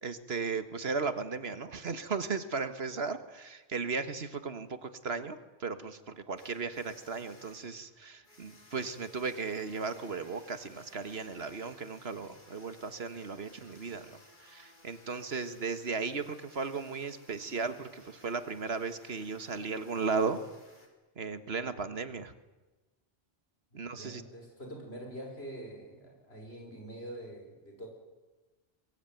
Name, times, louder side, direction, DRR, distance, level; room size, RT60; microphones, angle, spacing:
voice 1, 0.0-20.4 21.2-22.3 23.7-24.2, right 4 dB, 75° right, 11 dB, 1.7 m, -36 dB
sound 1, 6.4-20.9, left 1 dB, 50° left, 3.8 m, -59 dB
voice 2, 23.7-27.9, right 1 dB, 75° left, 2 dB, 6.4 m, -45 dB
22.5 x 22.5 x 9.3 m, 1.2 s
omnidirectional pair, 1.1 m